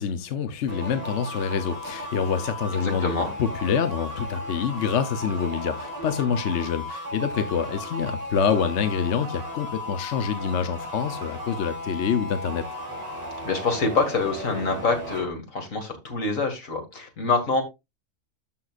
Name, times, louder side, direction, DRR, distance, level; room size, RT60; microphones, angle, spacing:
voice 1, 0.0-12.6, left 7 dB, 65° left, 1.0 m, -26 dB
sound 1, 0.7-15.3, left 1 dB, 30° right, 4.2 m, -35 dB
voice 2, 2.7-3.3 13.4-17.6, left 3 dB, 85° left, 2.4 m, -26 dB
13.0 x 5.7 x 2.4 m
omnidirectional pair, 1.4 m